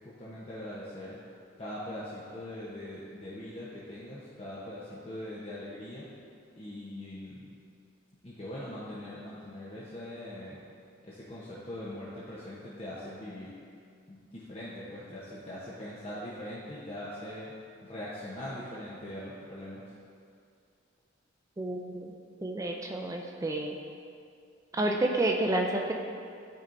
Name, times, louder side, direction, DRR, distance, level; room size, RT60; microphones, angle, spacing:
voice 1, 0.0-1.2 1.6-6.1 6.6-7.5 8.2-10.6 11.0-13.5 14.1-17.5 17.8-19.8, left 1 dB, 30° left, -8 dB, 0.8 m, -41 dB
voice 2, 21.6-22.1 22.4-23.8 24.7-26.0, right 2 dB, 15° right, 2 dB, 0.3 m, -30 dB
12.0 x 4.2 x 2.6 m, 2.4 s
head